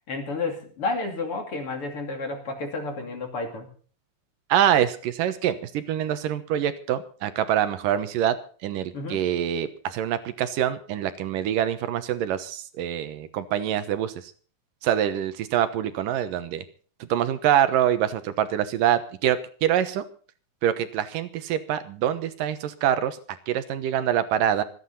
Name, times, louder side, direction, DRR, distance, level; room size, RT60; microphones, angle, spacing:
voice 1, 0.1-3.7 8.9-9.2, left 3 dB, 40° left, 4 dB, 3.3 m, -31 dB
voice 2, 4.5-8.4 8.6-14.1 14.8-16.6 17.0-20.1 20.6-23.2 23.5-24.6, right 10 dB, 75° right, 11 dB, 2.6 m, -25 dB
26.5 x 9.6 x 4.1 m, 0.42 s
omnidirectional pair, 4.1 m